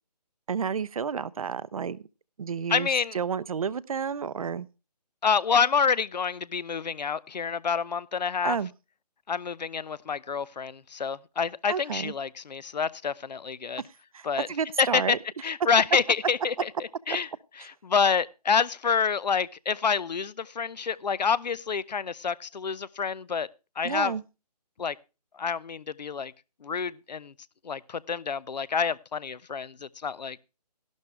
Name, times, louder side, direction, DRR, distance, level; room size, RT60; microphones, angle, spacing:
voice 1, 0.5-2.0 2.4-4.7 8.4-8.7 11.7-12.1 14.1-15.2 23.8-24.2, right 6 dB, 55° right, 0.6 m, -31 dB
voice 2, 2.7-3.2 5.2-8.6 9.3-13.8 14.2-14.5 14.8-15.2 15.4-16.7 17.1-17.3 17.6-23.5 23.8-24.1 24.8-25.0 25.4-26.3 26.6-27.3 27.6-30.4, left 6 dB, 80° left, 0.7 m, -27 dB
12.5 x 12.0 x 3.3 m
hypercardioid pair, 160°, 21 cm